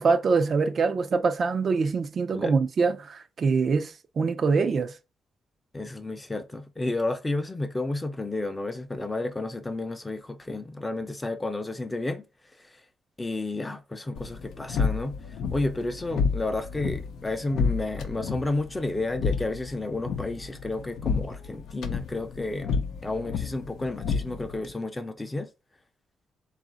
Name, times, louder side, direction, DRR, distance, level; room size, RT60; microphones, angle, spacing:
voice 1, 0.0-4.9, right 4 dB, 45° right, 0.3 m, -24 dB
voice 2, 5.7-12.2 13.2-25.5, left 2 dB, 15° left, 0.5 m, -31 dB
sound 1, 14.1-24.7, left 5 dB, 90° left, 0.5 m, -31 dB
4.0 x 2.5 x 3.8 m
cardioid pair, 130°, 0 cm